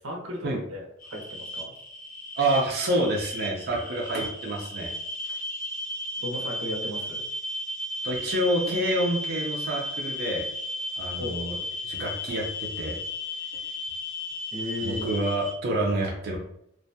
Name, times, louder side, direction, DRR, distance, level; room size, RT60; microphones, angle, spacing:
voice 1, 0.0-1.7 6.2-7.2 11.2-11.4 14.5-15.1, left 1 dB, 90° right, -1 dB, 0.7 m, -35 dB
sound 1, 1.0-15.5, left 1 dB, 45° left, 0.6 m, -35 dB
voice 2, 2.4-4.9 8.0-10.5 11.0-11.6 11.8-13.0 14.8-16.4, right 1 dB, 50° right, -2 dB, 0.4 m, -27 dB
2.5 x 2.1 x 2.6 m, 0.77 s
head